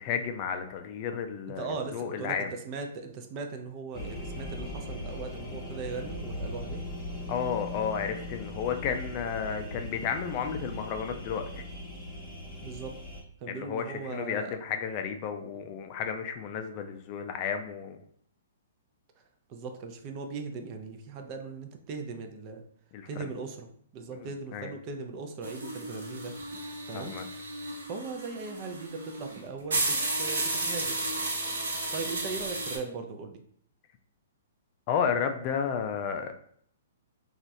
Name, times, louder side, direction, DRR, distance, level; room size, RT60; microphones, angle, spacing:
voice 1, 0.0-2.5 7.3-11.7 13.5-18.0 22.9-23.3 24.5-24.7 26.9-27.2 34.9-36.3, left 7 dB, 40° left, 6 dB, 0.3 m, -32 dB
voice 2, 1.6-6.8 12.6-12.9 13.4-14.5 19.5-22.6 23.1-26.3 26.9-27.1 27.9-30.9 31.9-33.4, right 4 dB, 35° right, 5 dB, 0.5 m, -39 dB
sound 1, 3.9-13.2, left 1 dB, 15° left, 0.8 m, -39 dB
sound 2, 25.4-32.8, right 2 dB, 85° right, 1.0 m, -33 dB
2.9 x 2.4 x 2.6 m, 0.63 s
hypercardioid pair, 130°, 0 cm